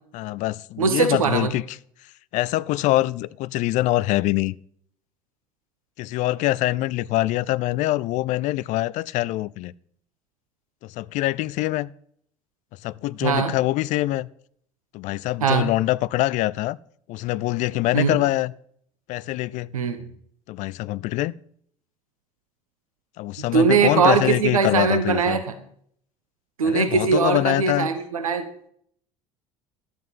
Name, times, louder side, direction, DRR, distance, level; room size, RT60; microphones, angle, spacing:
voice 1, 0.1-1.6 2.3-4.6 6.0-9.7 11.0-11.9 12.8-14.3 14.9-16.8 17.1-18.5 19.1-19.7 20.5-21.3 23.2-25.4 26.6-27.9, left 17 dB, 45° left, 0.4 m, -24 dB
voice 2, 0.8-1.5 13.2-13.6 15.4-15.7 17.9-18.2 19.7-20.1 23.5-25.5 26.6-28.4, right 5 dB, 75° right, 1.1 m, -21 dB
12.0 x 7.8 x 5.4 m
figure-of-eight pair, 65°, 18 cm